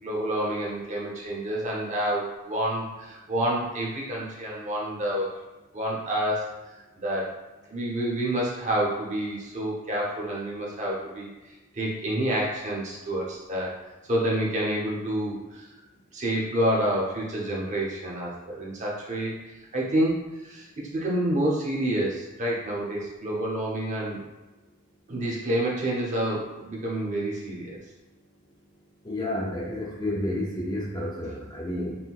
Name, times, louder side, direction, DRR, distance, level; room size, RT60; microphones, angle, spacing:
voice 1, 0.0-5.4 5.7-6.5 7.0-7.3 7.7-13.8 14.1-15.7 16.1-19.4 19.7-24.2 25.1-27.8, right 1 dB, 35° right, -4 dB, 0.9 m, -28 dB
voice 2, 29.0-32.0, left 1 dB, 20° left, -4 dB, 0.5 m, -30 dB
4.1 x 3.8 x 2.4 m, 1.1 s
head